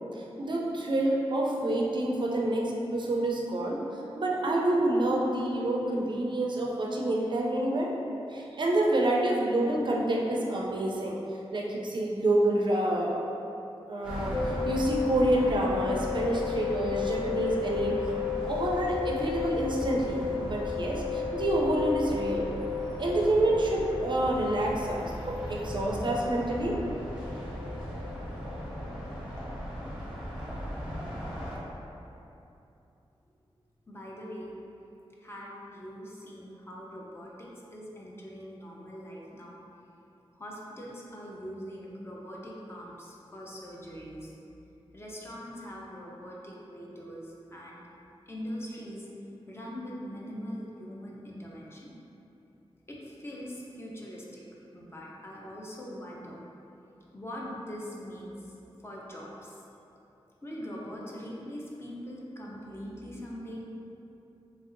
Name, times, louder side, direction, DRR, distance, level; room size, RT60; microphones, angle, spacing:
voice 1, 0.1-7.9 8.3-11.2 11.5-13.3 13.9-22.5 23.0-26.8, right 1 dB, 50° right, -2 dB, 0.4 m, -28 dB
sound 1, 14.0-31.6, equal, 10° right, 0.8 m, -38 dB
sound 2, 14.3-29.3 29.5-29.7, left 8 dB, 65° left, 0.6 m, -35 dB
voice 2, 33.9-34.6 35.2-39.5 40.3-44.4 44.9-47.8 48.3-49.1 49.5-52.0 52.9-54.4 54.7-56.4 57.1-58.5 58.8-59.6 60.4-63.7, equal, 25° left, -4 dB, 0.5 m, -42 dB
3.0 x 2.6 x 2.5 m, 2.8 s
wide cardioid pair, 70°, 10 cm